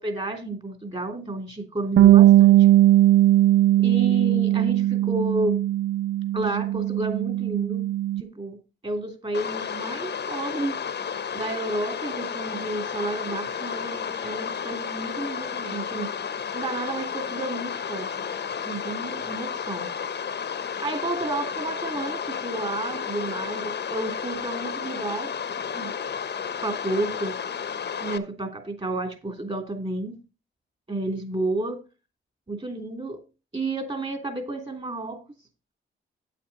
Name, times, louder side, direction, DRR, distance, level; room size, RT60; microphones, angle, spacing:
voice 1, 0.0-2.7 3.8-5.6 6.3-7.9 8.2-8.6 8.8-10.8 11.3-16.1 16.5-18.2 18.6-19.9 20.8-25.3 25.7-25.9 26.6-27.4 28.0-30.2 30.9-31.8 32.5-33.2 33.5-35.2, right 2 dB, 30° right, 3.1 m, -31 dB
Bass guitar, 2.0-8.2, right 13 dB, 80° right, 0.5 m, -18 dB
sound 1, 9.3-28.2, left 7 dB, 55° left, 1.1 m, -32 dB
8.8 x 8.4 x 4.2 m
cardioid pair, 75°, 21 cm